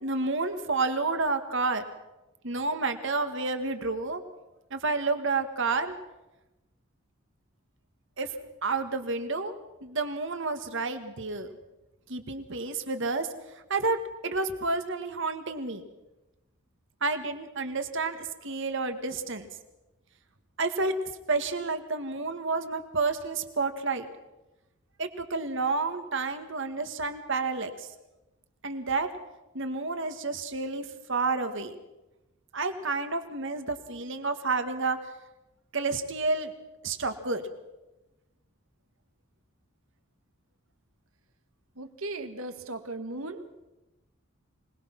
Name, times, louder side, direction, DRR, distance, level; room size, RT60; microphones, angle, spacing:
voice 1, 0.0-1.8 2.4-4.2 4.7-5.9 8.2-8.3 8.6-9.5 9.8-11.5 12.1-13.3 13.7-14.0 14.2-15.8 17.0-19.5 20.6-20.9 21.3-24.1 25.0-27.9 28.6-29.1 29.5-31.8 32.5-35.0 35.7-36.5 36.8-37.4, right 3 dB, 65° right, 8 dB, 1.9 m, -30 dB
voice 2, 41.8-43.5, right 2 dB, 85° right, 8 dB, 1.7 m, -37 dB
25.0 x 19.5 x 6.0 m, 1.0 s
head